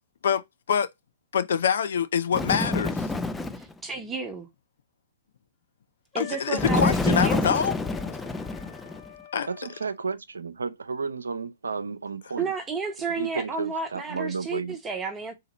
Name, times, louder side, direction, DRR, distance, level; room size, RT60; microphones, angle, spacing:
voice 1, 1.3-3.1 6.2-7.7 9.3-9.5, left 7 dB, 65° left, 0.6 m, -25 dB
Bird, 2.3-3.7 6.6-9.1, left 2 dB, 10° left, 0.5 m, -27 dB
voice 2, 3.5-4.5 6.1-7.5 12.4-15.3, right 4 dB, 15° right, 1.0 m, -32 dB
Wind instrument woodwind instrument, 6.1-10.0, left 12 dB, 35° left, 2.6 m, -45 dB
voice 3, 9.5-12.5 13.1-14.8, right 4 dB, 75° right, 0.5 m, -32 dB
3.9 x 2.8 x 4.1 m
figure-of-eight pair, 115°, 0 cm